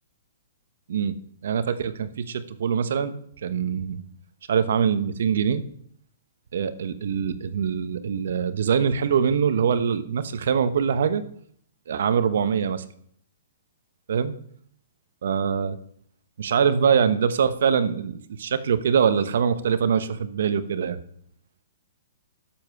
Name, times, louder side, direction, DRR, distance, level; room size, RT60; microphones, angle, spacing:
voice 1, 1.4-4.0 4.5-5.6 6.5-11.2 11.9-12.8 14.1-14.3 15.2-15.8 16.4-21.0, right 7 dB, 70° right, 13 dB, 1.0 m, -23 dB
10.5 x 7.3 x 6.5 m, 0.63 s
hypercardioid pair, 155°, 0 cm